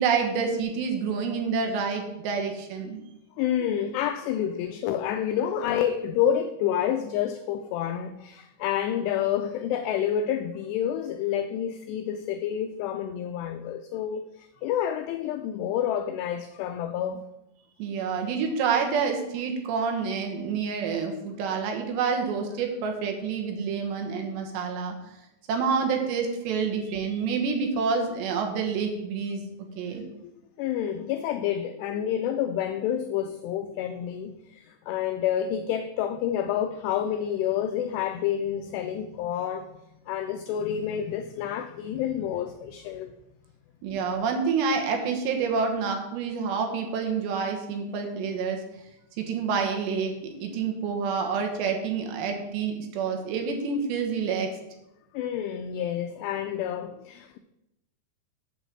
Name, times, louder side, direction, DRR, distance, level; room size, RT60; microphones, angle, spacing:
voice 1, 0.0-3.0 17.8-24.9 25.5-29.4 29.8-30.0 43.8-48.6 49.2-54.5, right 5 dB, 75° right, 3.2 m, -28 dB
voice 2, 3.4-17.2 29.9-30.3 30.6-39.7 40.1-43.1 55.1-57.4, left 9 dB, 85° left, 2.4 m, -29 dB
8.4 x 5.1 x 7.4 m
omnidirectional pair, 5.3 m